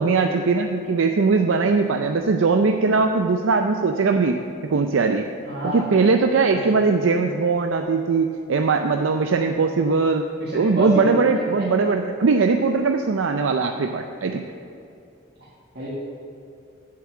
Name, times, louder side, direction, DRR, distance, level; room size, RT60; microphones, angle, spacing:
voice 1, 0.0-4.4 4.7-5.2 5.6-10.3 10.5-14.4, right 4 dB, 85° right, 5 dB, 0.5 m, -20 dB
voice 2, 5.4-5.9 6.5-6.8 10.4-11.2 11.6-11.7 15.4-15.5 15.7-15.9, equal, 55° right, -9 dB, 1.9 m, -29 dB
7.6 x 7.5 x 7.1 m, 2.6 s
head